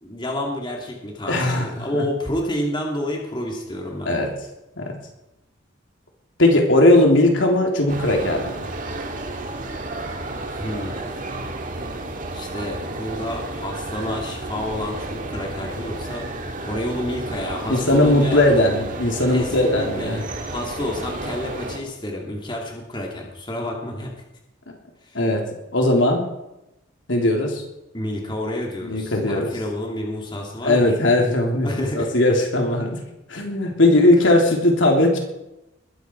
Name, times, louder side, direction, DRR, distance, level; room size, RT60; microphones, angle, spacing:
voice 1, 0.0-4.1 10.4-11.1 12.3-18.4 19.3-20.2 20.5-24.1 25.1-25.2 27.9-30.8 31.6-32.1, left 1 dB, 25° left, 0 dB, 2.7 m, -29 dB
voice 2, 1.3-2.0 4.0-4.3 4.8-5.0 6.4-8.6 17.7-20.2 25.1-25.4 25.7-26.3 27.1-27.6 28.8-29.5 30.6-33.0 33.3-35.2, left 1 dB, 70° left, 1 dB, 3.4 m, -18 dB
sound 1, 7.9-21.8, right 2 dB, 40° right, 2.0 m, -32 dB
21.0 x 14.5 x 4.7 m, 0.92 s
head